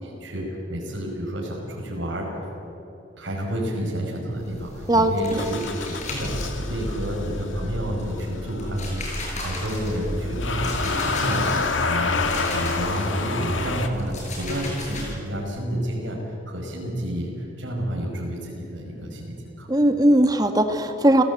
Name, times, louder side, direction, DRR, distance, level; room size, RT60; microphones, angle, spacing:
voice 1, 0.0-2.3 3.2-19.7, equal, 75° right, -2 dB, 5.6 m, -30 dB
sound 1, 4.3-7.6 8.0-13.0 13.4-15.1, left 1 dB, 40° left, 7.2 m, -36 dB
voice 2, 4.9-5.4 19.7-21.2, right 1 dB, 20° right, 6 dB, 1.6 m, -19 dB
Motor vehicle (road) / Engine starting, 5.3-13.9, left 3 dB, 90° left, 2.0 m, -28 dB
29.5 x 17.0 x 8.6 m, 2.9 s
head